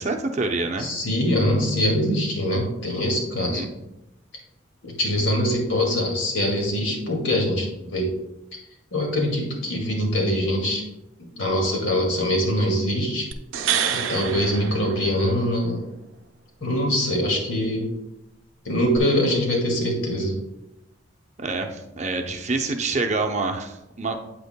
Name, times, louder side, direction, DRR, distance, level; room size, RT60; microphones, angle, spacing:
voice 1, 0.0-0.9 3.3-3.7 5.2-5.3 14.3-14.6 21.4-24.2, right 3 dB, 35° right, 4 dB, 0.6 m, -27 dB
voice 2, 0.8-3.7 4.8-8.1 8.9-10.8 11.4-13.3 13.9-15.8 16.6-17.9 18.6-20.3, equal, 75° left, 0 dB, 2.1 m, -23 dB
sound 1, 13.3-15.6 19.0-19.1, right 8 dB, 85° right, 0.6 m, -27 dB
8.5 x 8.2 x 2.2 m, 0.92 s
head